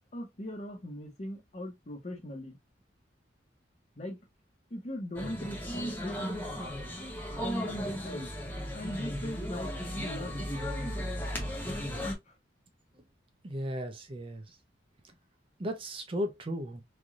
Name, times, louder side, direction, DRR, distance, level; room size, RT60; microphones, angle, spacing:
voice 1, 0.1-2.6 4.0-4.2 4.7-6.5 7.4-8.3 8.7-11.0, left 1 dB, 40° left, 1.0 m, -39 dB
sound 1, 5.1-12.1, equal, 10° left, 0.8 m, -36 dB
voice 2, 13.4-14.6 15.6-16.8, equal, 30° right, 0.5 m, -35 dB
3.1 x 2.6 x 2.4 m
head